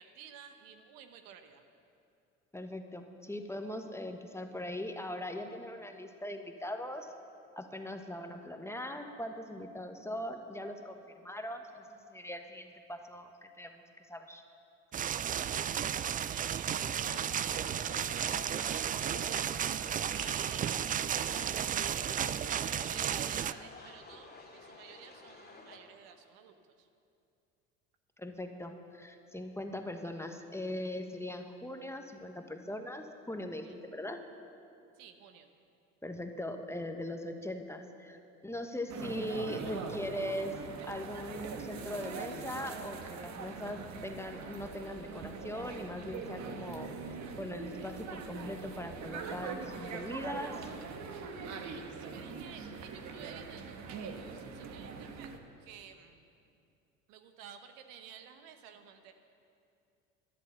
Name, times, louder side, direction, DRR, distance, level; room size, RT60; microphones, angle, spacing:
voice 1, 0.0-1.6 15.4-19.6 20.1-22.4 22.7-26.9 33.6-33.8 35.0-35.5 51.6-55.3 55.6-56.3 57.1-59.1, right 8 dB, 70° right, 7 dB, 1.1 m, -52 dB
voice 2, 2.5-7.1 7.6-13.8 14.1-14.4 28.2-33.7 33.9-34.2 36.0-38.2 38.4-40.6 40.9-46.9 47.4-50.7, left 1 dB, 5° left, 5 dB, 1.2 m, -40 dB
sound 1, 14.9-23.5, right 9 dB, 25° right, 0.4 m, -33 dB
sound 2, 16.8-25.8, left 3 dB, 25° left, 2.5 m, -51 dB
sound 3, 38.9-55.4, right 5 dB, 50° right, 1.4 m, -42 dB
12.5 x 11.0 x 6.8 m, 2.5 s
hypercardioid pair, 70°, 35 cm